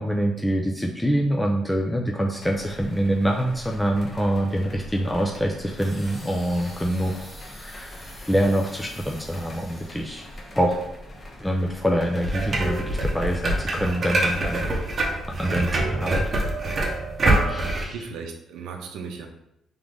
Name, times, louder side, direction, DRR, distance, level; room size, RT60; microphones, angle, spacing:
voice 1, 0.0-10.2 10.5-10.8 11.4-14.7 15.4-16.4 17.5-17.9, equal, 5° left, 1 dB, 0.5 m, -25 dB
sound 1, 2.4-15.6, left 1 dB, 35° left, 0.9 m, -42 dB
sound 2, 5.7-10.7 11.3-11.5, left 1 dB, 20° left, 1.3 m, -47 dB
sound 3, 12.2-17.8, right 2 dB, 40° right, 0.9 m, -25 dB
voice 2, 17.5-19.3, right 5 dB, 85° right, 4 dB, 0.6 m, -37 dB
3.6 x 3.3 x 3.7 m, 0.80 s
cardioid pair, 90°, 0 cm